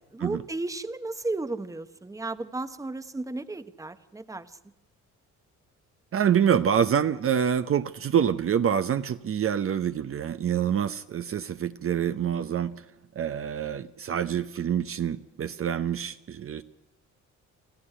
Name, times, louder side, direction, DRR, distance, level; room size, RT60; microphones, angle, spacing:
voice 1, 0.1-4.5, right 2 dB, 10° right, 12 dB, 1.0 m, -34 dB
voice 2, 6.1-12.7 13.2-16.6, right 8 dB, 45° right, 10 dB, 0.8 m, -26 dB
28.0 x 13.5 x 10.0 m, 0.95 s
cardioid pair, 90°, 30 cm